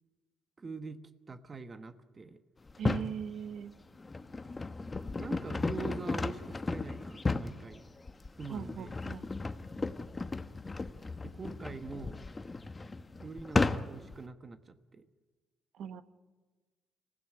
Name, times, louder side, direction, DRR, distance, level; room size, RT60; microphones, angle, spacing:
voice 1, 0.6-1.0 1.3-2.4 5.2-7.8 8.3-9.0 11.2-12.2 13.2-15.1, right 4 dB, 35° right, 10 dB, 1.2 m, -44 dB
sound 1, 2.7-3.2 3.8-14.2, left 3 dB, 25° left, 1.0 m, -35 dB
voice 2, 2.8-3.7 8.5-9.2 15.7-16.0, right 7 dB, 75° right, 12 dB, 1.0 m, -39 dB
25.5 x 16.0 x 9.7 m, 1.4 s
cardioid pair, 90°, 0 cm